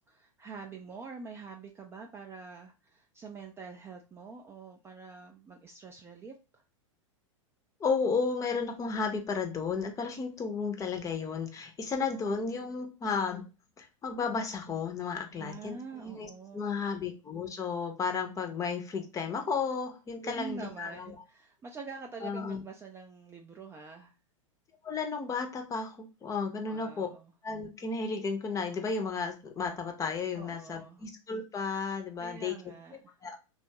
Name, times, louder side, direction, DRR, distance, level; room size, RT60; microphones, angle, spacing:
voice 1, 0.1-6.6 15.4-16.6 20.2-24.1 26.6-27.3 30.3-31.1 32.2-33.1, right 5 dB, 15° right, 2 dB, 0.3 m, -45 dB
voice 2, 7.8-13.4 13.8-21.1 22.2-22.6 24.8-27.1 27.4-32.5 33.2-33.4, left 5 dB, 20° left, 5 dB, 0.6 m, -33 dB
2.8 x 2.3 x 2.7 m, 0.30 s
hypercardioid pair, 100°, 17 cm